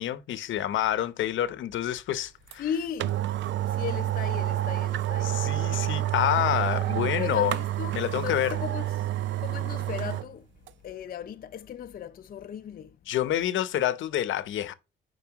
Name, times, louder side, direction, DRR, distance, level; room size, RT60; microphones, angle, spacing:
voice 1, 0.0-2.6 5.2-7.5 7.9-8.5 13.1-14.7, left 12 dB, 75° left, 0.8 m, -28 dB
sound 1, 2.5-2.6 3.0-10.3 10.7-10.8, right 13 dB, 70° right, 0.5 m, -29 dB
voice 2, 2.6-3.2 3.6-5.5 7.2-9.1 9.4-10.5 10.8-13.0, left 8 dB, 45° left, 0.5 m, -36 dB
7.1 x 5.4 x 3.0 m
cardioid pair, 90°, 20 cm